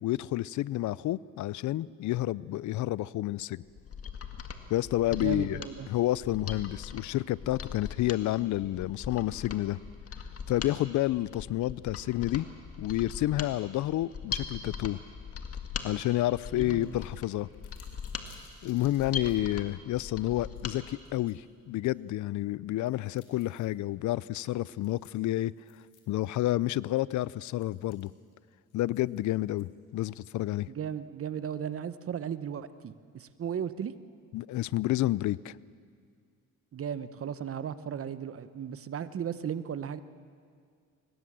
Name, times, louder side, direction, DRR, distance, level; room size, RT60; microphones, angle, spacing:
voice 1, 0.0-3.6 4.7-5.6 5.9-9.8 10.5-12.5 12.8-15.0 15.8-17.5 18.6-25.5 26.1-28.1 28.7-30.7 34.3-35.5, left 15 dB, 70° left, 21 dB, 0.5 m, -30 dB
Mechanisms, 3.7-20.8 21.1-21.2, left 6 dB, 50° left, 2.0 m, -40 dB
voice 2, 5.1-5.9 16.5-16.9 30.7-33.9 36.7-40.0, right 8 dB, 50° right, 14 dB, 1.0 m, -36 dB
sound 1, 16.2-16.3 16.6-19.4 19.9-20.0 20.4-21.3 21.8-21.9 22.8-23.7 24.3-24.5 24.8-26.3 26.6-26.7 27.4-29.9, left 6 dB, 90° left, 3.6 m, -62 dB
23.5 x 21.0 x 7.5 m, 2.1 s
cardioid pair, 90°, 30 cm